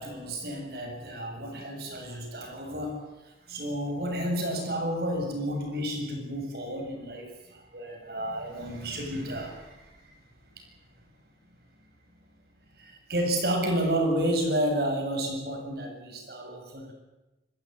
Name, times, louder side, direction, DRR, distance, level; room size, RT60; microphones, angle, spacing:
voice 1, 0.0-10.2 10.6-10.7 12.7-16.9, right 1 dB, 60° right, 2 dB, 7.6 m, -31 dB
27.0 x 15.0 x 9.7 m, 1.0 s
head